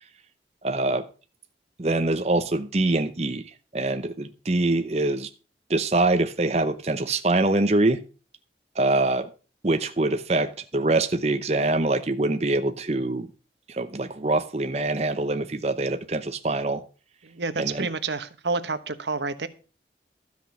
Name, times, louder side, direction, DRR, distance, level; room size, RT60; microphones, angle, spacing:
voice 1, 0.6-1.1 1.8-5.3 5.7-8.0 8.7-9.3 9.6-13.3 13.7-16.8 17.6-17.9, right 2 dB, 35° right, 0.7 m, -24 dB
voice 2, 17.2-19.5, right 4 dB, 80° right, 1.1 m, -29 dB
13.0 x 6.1 x 7.2 m
head